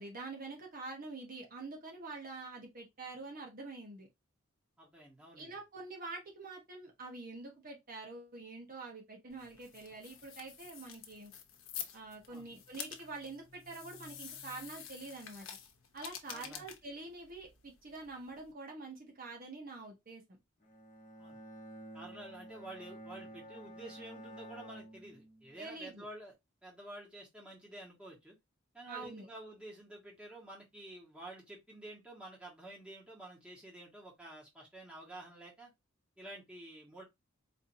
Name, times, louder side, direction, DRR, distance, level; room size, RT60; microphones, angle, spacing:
voice 1, 0.0-4.1 5.4-11.3 11.9-15.5 15.9-20.2 25.6-26.1 28.9-29.3, right 3 dB, 45° right, 1.0 m, -46 dB
voice 2, 4.8-5.5 12.3-12.4 16.3-16.7 21.2-21.4 21.9-26.3 26.6-28.4 28.7-35.7 36.2-37.0, right 1 dB, 5° right, 1.3 m, -50 dB
sound 1, 9.3-18.5, left 8 dB, 85° left, 0.8 m, -49 dB
Bowed string instrument, 20.6-25.8, equal, 40° left, 1.0 m, -51 dB
4.3 x 2.7 x 2.6 m
head